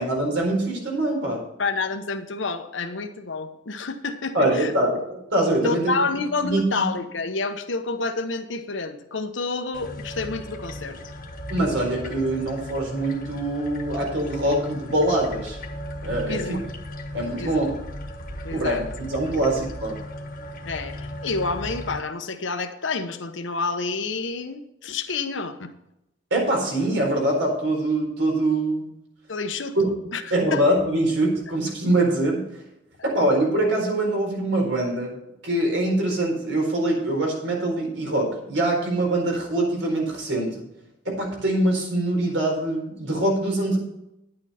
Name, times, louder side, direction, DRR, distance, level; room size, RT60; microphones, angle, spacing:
voice 1, 0.0-1.4 4.3-5.8 6.4-6.9 11.5-15.6 16.0-16.6 17.1-17.7 18.5-20.0 26.3-28.9 30.3-32.4 33.0-35.1 35.4-40.6 41.0-43.8, right 1 dB, 80° right, 0 dB, 4.4 m, -23 dB
voice 2, 1.6-4.7 5.6-11.1 16.3-16.6 17.4-17.6 18.4-18.8 19.4-19.5 20.7-25.7 29.3-30.2 30.5-30.6, left 3 dB, 75° left, 7 dB, 1.0 m, -29 dB
sound 1, 9.7-22.0, left 1 dB, 50° left, 1.3 m, -36 dB
10.5 x 8.9 x 4.3 m, 0.86 s
head